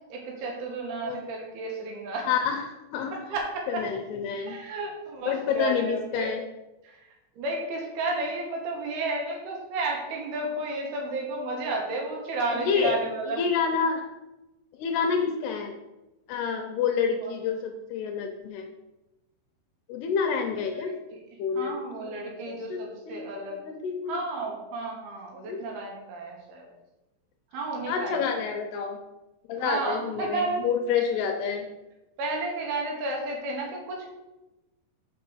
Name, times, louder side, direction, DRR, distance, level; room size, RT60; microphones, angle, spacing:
voice 1, 0.1-2.3 3.3-3.8 4.5-6.3 6.8-7.0 7.4-13.4 17.2-17.3 20.7-20.8 21.6-23.6 24.1-26.7 27.5-28.2 29.6-30.6 32.2-34.1, right 2 dB, 70° right, 0 dB, 3.0 m, -32 dB
voice 2, 2.2-3.1 3.7-4.6 5.3-6.4 12.5-13.0 13.4-14.1 14.8-15.7 16.3-18.7 19.9-20.9 21.4-22.8 23.1-23.2 23.5-24.2 25.5-25.6 27.9-29.0 29.5-31.7, left 6 dB, 80° left, 4 dB, 2.5 m, -28 dB
6.3 x 5.3 x 6.2 m, 1.0 s
omnidirectional pair, 5.1 m